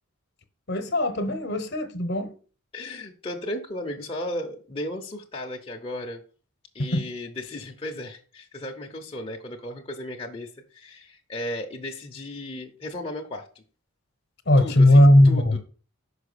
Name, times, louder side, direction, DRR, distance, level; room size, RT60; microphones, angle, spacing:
voice 1, 0.7-2.3 6.9-7.1 14.5-15.6, left 1 dB, 50° left, 1.0 m, -18 dB
voice 2, 2.7-6.3 6.7-13.6 14.6-15.6, left 1 dB, 25° left, 0.7 m, -35 dB
5.8 x 4.9 x 6.7 m
head